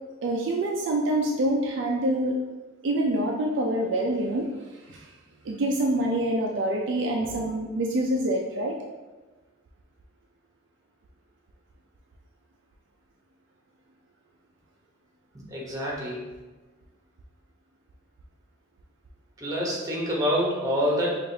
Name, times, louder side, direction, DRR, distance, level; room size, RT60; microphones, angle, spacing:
voice 1, 0.2-2.4 2.8-4.5 4.9-5.0 5.5-8.8, right 1 dB, 60° right, -1 dB, 0.4 m, -26 dB
voice 2, 15.5-16.2 19.4-21.2, equal, 15° right, -4 dB, 0.8 m, -26 dB
4.8 x 2.5 x 2.6 m, 1.2 s
head